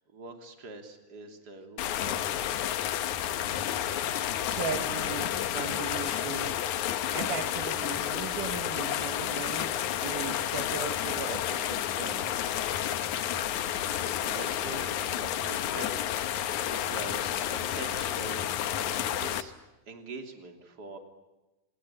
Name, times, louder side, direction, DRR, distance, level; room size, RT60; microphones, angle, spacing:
voice 1, 0.1-2.4 13.8-19.6 19.9-21.0, right 3 dB, 30° right, 5 dB, 3.4 m, -44 dB
sound 1, 1.8-19.4, left 11 dB, 65° left, 2.3 m, -31 dB
voice 2, 4.2-6.7 7.1-12.3, right 7 dB, 70° right, 7 dB, 2.9 m, -38 dB
27.5 x 21.0 x 10.0 m, 1.1 s
omnidirectional pair, 4.0 m